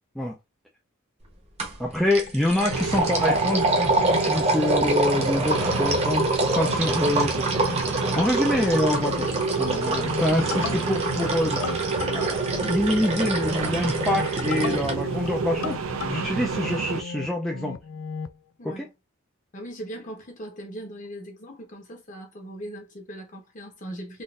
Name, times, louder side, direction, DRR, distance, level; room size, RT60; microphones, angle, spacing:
sound 1, 1.6-1.8 2.1-14.9, right 2 dB, 30° right, 0.8 m, -26 dB
voice 1, 1.8-7.6 8.1-9.3 9.6-11.8 12.1-15.8 16.1-17.8 18.6-18.9, left 1 dB, ahead, 0.4 m, -26 dB
sound 2, 2.3-18.4, left 5 dB, 70° left, 0.4 m, -37 dB
sound 3, 2.7-17.0, right 5 dB, 70° right, 0.5 m, -29 dB
voice 2, 18.6-18.9 19.5-24.2, right 1 dB, 40° left, 1.1 m, -39 dB
3.8 x 2.5 x 2.4 m
head